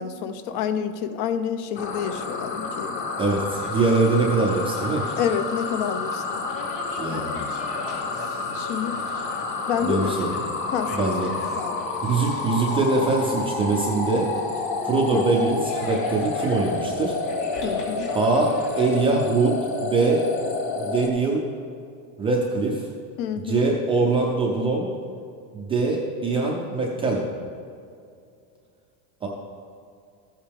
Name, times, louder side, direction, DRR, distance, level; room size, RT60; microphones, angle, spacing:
voice 1, 0.0-3.1 5.2-6.5 7.1-7.5 8.5-9.0 9.7-10.2 10.7-11.1 11.6-11.9 15.1-15.2 17.6-18.1 23.2-23.7, left 8 dB, 55° left, 10 dB, 0.7 m, -28 dB
sound 1, 1.7-21.1, left 3 dB, 25° left, 0.8 m, -29 dB
voice 2, 3.2-5.1 7.0-7.4 9.8-10.5 10.9-11.3 12.0-14.3 14.8-17.1 18.1-20.3 20.8-21.4 22.2-22.9 23.4-24.9 25.5-27.2 29.2-29.3, right 3 dB, 15° right, -2 dB, 0.3 m, -23 dB
sound 2, 3.5-19.1, left 3 dB, 85° left, 2.6 m, -42 dB
14.5 x 8.5 x 3.4 m, 2.4 s
supercardioid pair, 160°, 46 cm